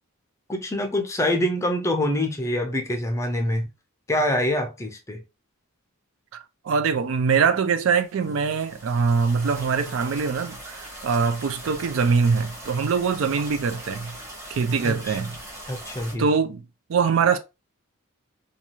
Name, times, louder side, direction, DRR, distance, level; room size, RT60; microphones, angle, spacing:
voice 1, 0.5-3.7 4.1-5.2 14.8-15.2 15.7-16.2, left 1 dB, 15° left, 0.4 m, -25 dB
voice 2, 6.6-14.1 14.5-15.3 16.2-16.6 16.9-17.4, right 5 dB, 65° right, 0.3 m, -23 dB
sound 1, 7.8-16.1, right 1 dB, 15° right, 0.9 m, -41 dB
2.6 x 2.3 x 2.8 m
head